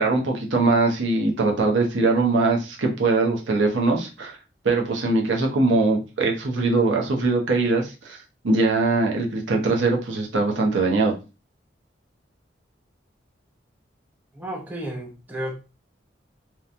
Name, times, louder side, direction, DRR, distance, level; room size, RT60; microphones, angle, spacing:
voice 1, 0.0-4.4 4.6-8.2 8.4-11.1, right 3 dB, 85° right, 1 dB, 0.7 m, -21 dB
voice 2, 14.3-15.5, right 1 dB, 10° right, 0 dB, 0.5 m, -32 dB
2.9 x 2.2 x 2.5 m, 0.30 s
head